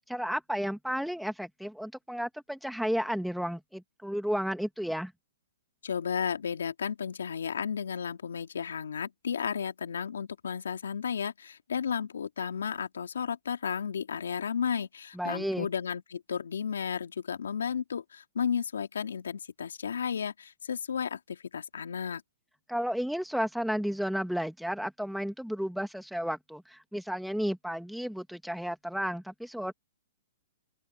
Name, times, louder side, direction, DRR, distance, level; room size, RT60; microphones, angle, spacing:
voice 1, 0.1-5.1 15.1-15.7 22.7-29.7, equal, ahead, 2.5 m, -32 dB
voice 2, 5.8-22.2, left 7 dB, 80° left, 2.9 m, -33 dB
open air
hypercardioid pair, 130°, 0 cm